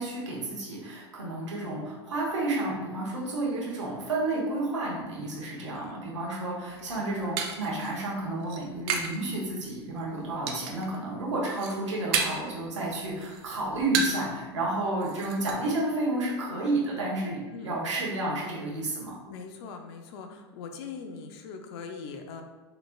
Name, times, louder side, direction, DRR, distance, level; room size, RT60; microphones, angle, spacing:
voice 1, 0.0-19.1, right 2 dB, 85° right, -4 dB, 1.1 m, -31 dB
voice 2, 5.6-6.0 6.8-7.1 17.5-17.8 19.3-22.4, left 5 dB, 60° left, 5 dB, 0.6 m, -42 dB
sound 1, 6.7-9.2 9.5-10.0 10.5-11.0 11.3-12.6 12.9-14.3 14.6-14.7 15.0-15.5, right 5 dB, 60° right, 0.6 m, -32 dB
4.0 x 3.3 x 2.4 m, 1.2 s
hypercardioid pair, 85°, 15 cm